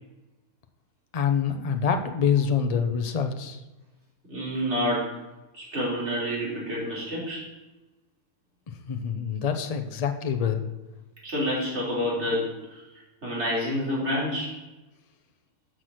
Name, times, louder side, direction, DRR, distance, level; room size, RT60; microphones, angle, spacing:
voice 1, 1.1-3.6 8.9-10.6, left 7 dB, 40° left, 6 dB, 0.5 m, -26 dB
voice 2, 4.3-5.1 5.5-7.4 11.2-12.8 13.2-14.6, equal, 45° right, -6 dB, 3.6 m, -28 dB
8.0 x 6.0 x 6.2 m, 1.1 s
omnidirectional pair, 1.7 m